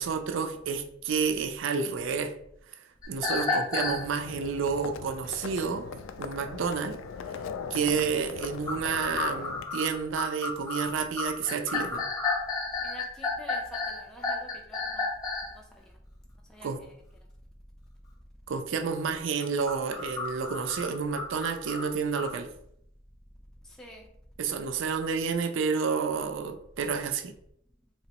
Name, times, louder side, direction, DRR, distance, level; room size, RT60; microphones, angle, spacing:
voice 1, 0.0-2.3 3.1-5.9 6.2-7.0 7.7-12.1 16.6-16.8 18.5-22.5 24.4-27.3, right 5 dB, 70° right, 8 dB, 0.4 m, -30 dB
sound 1, 3.0-4.0 8.4-15.5 19.4-22.3, left 3 dB, 20° left, 0.8 m, -31 dB
Livestock farm animals working animals, 3.9-9.6, left 5 dB, 90° left, 0.3 m, -40 dB
voice 2, 12.8-15.1 15.5-15.9 16.5-16.9 23.6-24.0, equal, 5° left, -1 dB, 0.3 m, -47 dB
3.1 x 2.9 x 2.9 m, 0.72 s
head